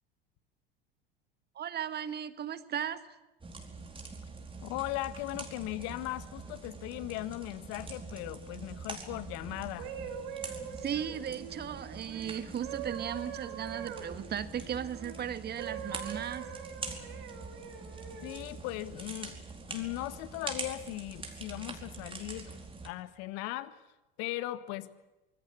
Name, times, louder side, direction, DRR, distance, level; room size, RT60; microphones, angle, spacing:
voice 1, 1.6-3.0 10.8-16.5, right 9 dB, 35° right, 13 dB, 1.8 m, -36 dB
sound 1, 3.4-22.9, right 3 dB, 20° right, 4.7 m, -44 dB
voice 2, 4.6-9.9 18.2-19.3 19.7-22.5 22.8-23.8 24.2-24.9, left 17 dB, 55° left, 14 dB, 1.7 m, -38 dB
sound 2, 9.8-15.2 15.6-18.5 19.1-19.4, right 8 dB, 65° right, 5.4 m, -43 dB
26.0 x 20.5 x 8.4 m, 1.0 s
hypercardioid pair, 80°, 29 cm